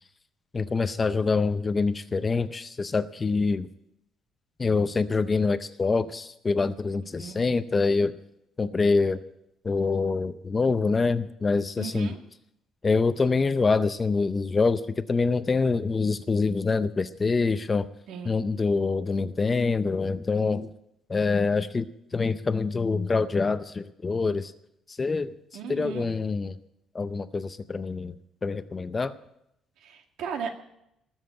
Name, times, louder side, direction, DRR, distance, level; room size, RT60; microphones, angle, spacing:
voice 1, 0.5-3.7 4.6-8.1 8.6-9.2 9.6-12.1 12.8-17.9 18.2-20.7 21.1-24.5 24.9-25.3 25.7-26.6 26.9-28.1 28.4-29.1, left 4 dB, 20° left, 12 dB, 0.5 m, -25 dB
voice 2, 11.8-12.2 18.1-18.4 25.5-26.1 29.8-30.6, right 6 dB, 70° right, 5 dB, 2.0 m, -36 dB
20.0 x 7.3 x 8.9 m, 0.80 s
cardioid pair, 170°, 0 cm